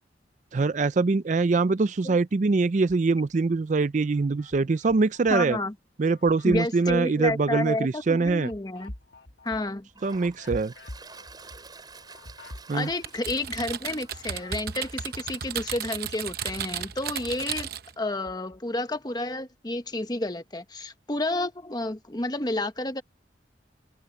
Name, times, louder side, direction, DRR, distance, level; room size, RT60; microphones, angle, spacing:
voice 1, 0.5-5.6 6.0-8.5 10.0-10.7 12.7-12.9, right 3 dB, 45° right, 0.4 m, -23 dB
sound 1, 2.8-3.6 4.0-5.6 6.0-15.7 16.0-18.6, left 1 dB, 70° left, 1.6 m, -47 dB
voice 2, 5.3-5.7 6.4-8.9 9.4-9.9 12.7-17.7 18.0-23.0, left 2 dB, 25° left, 1.2 m, -30 dB
Toilet flush, 8.8-8.9 9.5-15.7, right 4 dB, 25° right, 7.7 m, -50 dB
Typing, 13.0-17.9, right 8 dB, 60° right, 0.9 m, -34 dB
open air
head